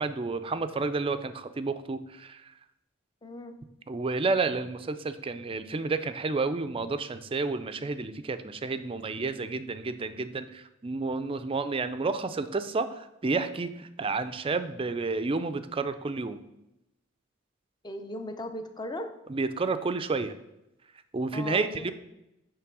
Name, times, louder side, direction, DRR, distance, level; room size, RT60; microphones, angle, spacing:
voice 1, 0.0-2.5 3.9-16.4 19.3-20.3 21.1-21.9, right 3 dB, 25° right, 11 dB, 0.4 m, -30 dB
voice 2, 3.2-3.5 17.8-19.1 21.3-21.9, left 1 dB, 20° left, 7 dB, 0.6 m, -37 dB
9.4 x 3.3 x 6.1 m, 0.91 s
head